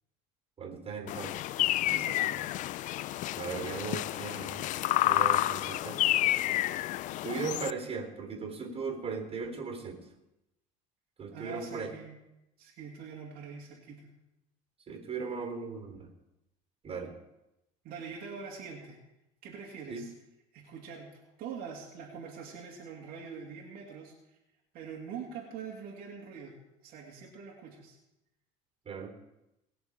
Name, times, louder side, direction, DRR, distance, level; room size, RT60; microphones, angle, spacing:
voice 1, 0.6-1.3 3.3-4.7 5.0-6.1 7.2-10.0 11.2-11.9 14.9-16.1 16.8-17.1 19.9-20.0 28.8-29.1, right 5 dB, 35° right, 3 dB, 3.4 m, -37 dB
sound 1, 1.1-7.7, left 15 dB, 50° left, 0.4 m, -30 dB
voice 2, 1.9-2.4 11.3-12.2 12.6-14.1 17.8-19.0 19.4-20.1 20.5-24.1 24.7-26.5 26.8-28.0, right 6 dB, 60° right, -2 dB, 2.7 m, -44 dB
20.0 x 6.9 x 5.1 m, 0.90 s
supercardioid pair, 100°, 17 cm